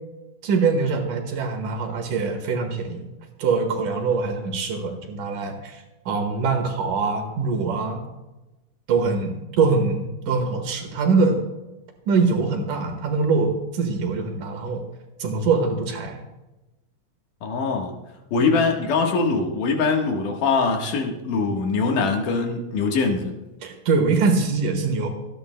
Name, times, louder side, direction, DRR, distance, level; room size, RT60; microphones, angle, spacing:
voice 1, 0.4-3.1 3.4-8.0 8.9-11.4 12.1-14.8 15.2-16.2 18.4-18.5 23.6-25.1, right 4 dB, 80° right, 4 dB, 3.1 m, -23 dB
voice 2, 17.4-17.9 18.3-23.3, left 4 dB, 80° left, 2 dB, 3.0 m, -22 dB
25.5 x 10.0 x 2.2 m, 1.0 s
omnidirectional pair, 3.6 m